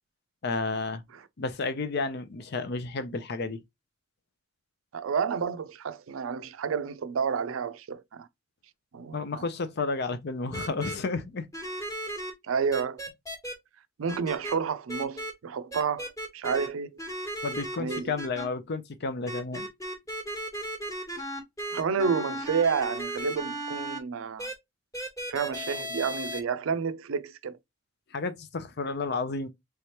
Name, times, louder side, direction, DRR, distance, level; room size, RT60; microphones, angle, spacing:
voice 1, 0.4-1.0 1.4-3.6 9.1-11.5 17.4-19.7 28.1-29.5, left 3 dB, 55° left, 0.5 m, -31 dB
voice 2, 4.9-8.3 8.9-9.4 12.4-13.0 14.0-17.0 17.8-18.1 21.7-24.5 25.3-27.5, right 6 dB, 85° right, 0.4 m, -30 dB
sound 1, 10.5-10.9 11.5-12.3 12.7-13.5 14.1-14.5 14.9-15.3 15.7-16.7 17.0-18.4 19.3-24.0 24.4-24.5 24.9-26.4, right 1 dB, 15° left, 1.1 m, -35 dB
3.4 x 3.2 x 2.8 m
head